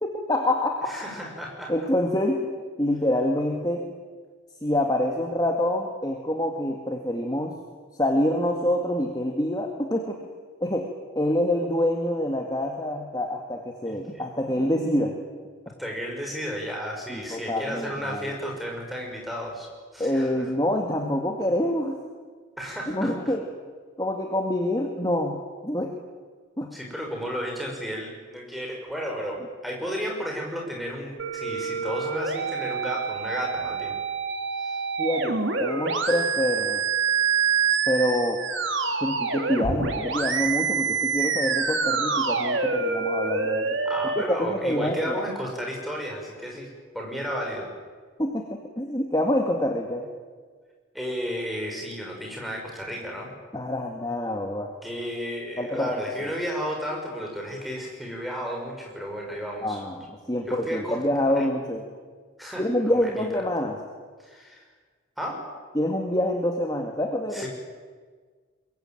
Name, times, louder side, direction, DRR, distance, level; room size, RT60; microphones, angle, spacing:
voice 1, 0.0-0.9 1.7-3.8 4.6-7.5 8.0-10.2 10.6-10.9 11.2-15.1 17.1-18.2 20.0-22.0 22.9-23.4 24.0-25.9 26.6-26.7 35.0-36.8 37.9-38.4 39.0-43.8 44.4-45.2 48.2-50.1 53.5-54.7 55.6-55.9 59.6-61.9 62.6-63.8 65.7-67.5, left 1 dB, 20° left, 3 dB, 1.9 m, -26 dB
voice 2, 0.9-1.7 13.8-14.0 15.8-19.7 19.9-20.4 22.6-23.3 26.7-34.0 34.6-34.8 43.9-46.7 46.9-47.7 50.9-53.3 54.8-59.8 60.5-61.0 61.3-61.5 62.4-63.4 64.2-64.6 65.2-65.4 67.3-67.5, equal, ahead, -1 dB, 5.9 m, -33 dB
sound 1, 31.2-44.2, right 5 dB, 65° right, 2.4 m, -26 dB
23.0 x 22.5 x 9.1 m, 1.6 s
head